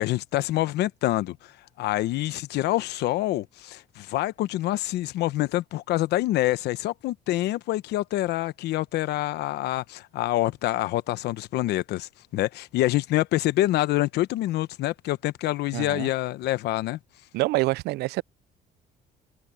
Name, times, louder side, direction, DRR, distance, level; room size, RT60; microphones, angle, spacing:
voice 1, 0.0-1.5 1.8-17.0, left 16 dB, 80° left, 1.0 m, -26 dB
voice 2, 15.7-16.1 17.3-18.2, right 20 dB, 80° right, 0.4 m, -26 dB
cardioid pair, 110°, 17 cm